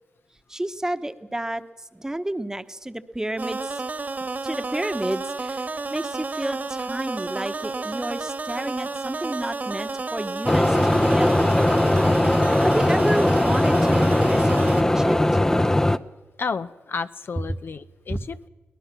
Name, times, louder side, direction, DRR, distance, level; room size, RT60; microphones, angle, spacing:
voice 1, 0.5-1.6 1.9-3.8 4.4-11.3 12.6-15.4 18.1-18.2, right 1 dB, 15° right, 10 dB, 1.2 m, -30 dB
sound 1, 3.4-14.8, right 3 dB, 40° right, 1.6 m, -31 dB
sound 2, 10.4-16.0, left 1 dB, 15° left, 0.8 m, -19 dB
voice 2, 16.4-18.5, left 5 dB, 60° left, 10 dB, 0.8 m, -31 dB
23.5 x 18.5 x 6.1 m, 1.2 s
cardioid pair, 60°, 4 cm